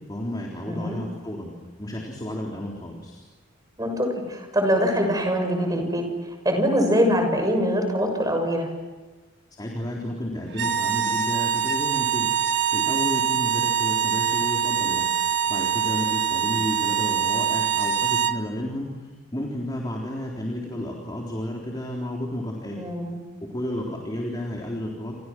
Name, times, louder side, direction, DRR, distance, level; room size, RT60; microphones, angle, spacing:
voice 1, 0.1-1.5 1.8-3.2 9.6-12.3 12.7-22.8 23.5-25.2, left 1 dB, 20° left, -1 dB, 3.8 m, -32 dB
voice 2, 0.7-1.0 3.8-6.0 6.4-8.7 22.8-23.2, equal, 20° right, 4 dB, 6.4 m, -23 dB
sound 1, 10.5-18.4, right 8 dB, 60° right, 1.5 m, -24 dB
29.5 x 28.5 x 6.2 m, 1.2 s
head